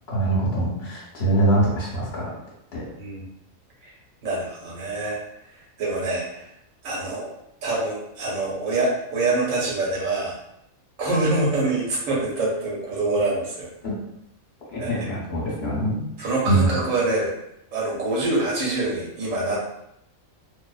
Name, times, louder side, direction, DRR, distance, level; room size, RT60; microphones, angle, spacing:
voice 1, 0.1-2.2 13.8-13.9 14.7-16.7, right 2 dB, 50° left, -5 dB, 1.0 m, -23 dB
voice 2, 4.2-5.2 5.8-6.5 6.8-7.3 7.6-10.3 11.0-13.7 14.8-15.1 16.2-17.3 17.7-19.6, right 2 dB, 70° right, -4 dB, 1.2 m, -25 dB
2.6 x 2.0 x 2.3 m, 0.80 s
omnidirectional pair, 1.5 m